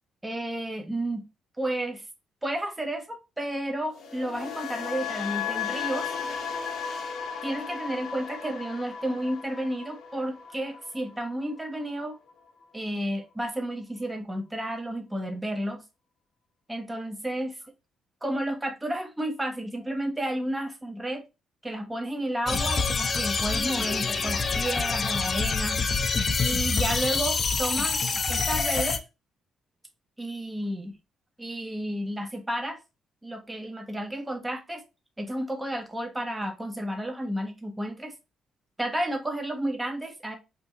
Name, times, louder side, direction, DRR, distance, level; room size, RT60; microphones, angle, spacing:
voice 1, 0.2-1.2 1.6-2.0 2.4-6.1 7.4-12.2 12.7-15.8 16.7-17.6 18.2-21.2 21.6-25.8 26.4-28.0 28.3-29.0 30.2-30.9 31.4-32.8 33.2-34.8 35.2-38.1 38.8-40.4, right 1 dB, 10° right, 0.6 m, -32 dB
sound 1, 3.9-12.0 12.3-12.6, left 7 dB, 70° left, 0.7 m, -35 dB
sound 2, 22.5-29.0, left 4 dB, 40° left, 0.4 m, -26 dB
2.9 x 2.6 x 3.4 m
cardioid pair, 90°, 0 cm